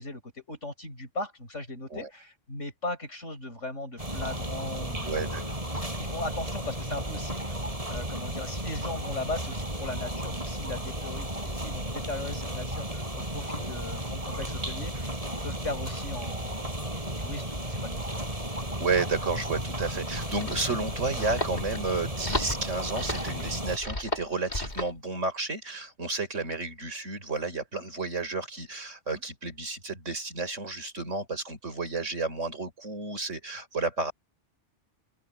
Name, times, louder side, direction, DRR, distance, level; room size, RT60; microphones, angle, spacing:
voice 1, 0.0-5.5 5.8-7.4 7.9-15.1 15.4-16.9 17.2-18.0 29.1-29.2, left 2 dB, 85° left, 7.4 m, -38 dB
sound 1, 4.0-23.8, right 1 dB, 30° right, 6.0 m, -34 dB
voice 2, 5.1-5.4 18.8-34.1, right 3 dB, 90° right, 5.0 m, -32 dB
sound 2, 19.9-25.0, left 1 dB, 35° left, 3.1 m, -35 dB
open air
omnidirectional pair, 1.2 m